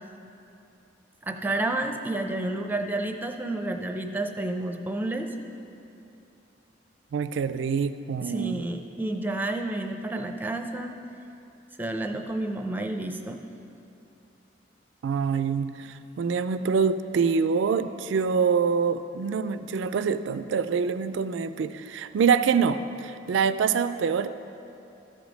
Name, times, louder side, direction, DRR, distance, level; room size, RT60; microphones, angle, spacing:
voice 1, 1.2-5.3 8.2-10.9 11.8-13.4, right 2 dB, 10° right, 5 dB, 0.5 m, -30 dB
voice 2, 7.1-8.6 15.0-24.3, right 6 dB, 80° right, 12 dB, 0.3 m, -25 dB
13.0 x 5.1 x 6.2 m, 2.8 s
head